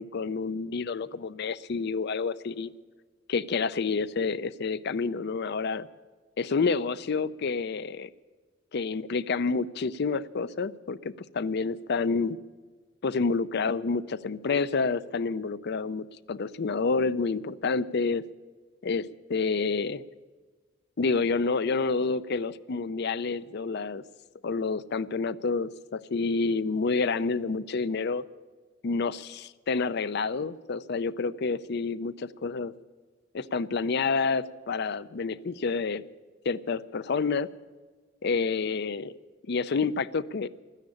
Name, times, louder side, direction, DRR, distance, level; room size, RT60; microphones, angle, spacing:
voice 1, 0.0-2.7 3.3-5.9 6.4-8.1 8.7-12.4 13.0-18.2 18.8-20.0 21.0-24.0 24.4-28.2 28.8-32.7 33.3-36.0 36.5-37.5 38.2-39.1 39.5-40.5, left 4 dB, 55° left, 16 dB, 0.5 m, -29 dB
13.0 x 10.0 x 9.9 m, 1.4 s
head